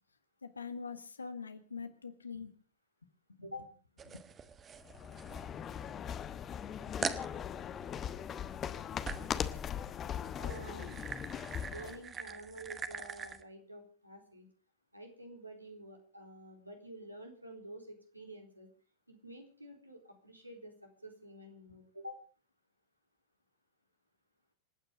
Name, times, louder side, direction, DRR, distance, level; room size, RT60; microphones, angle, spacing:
voice 1, 0.4-2.5 3.4-3.5 4.1-4.3, left 5 dB, 75° left, 9 dB, 1.8 m, -44 dB
sound 1, 4.0-6.0 6.5-6.6 7.0-7.3 9.1-9.4 10.2-13.4, right 6 dB, 20° right, 1.4 m, -43 dB
sound 2, 4.8-12.0, left 8 dB, 25° left, 1.1 m, -40 dB
voice 2, 10.4-11.0 11.6-14.5 14.9-18.7 19.1-22.2, right 1 dB, 85° right, 2 dB, 3.9 m, -49 dB
27.0 x 9.3 x 5.1 m, 0.40 s
figure-of-eight pair, 90°, 0 cm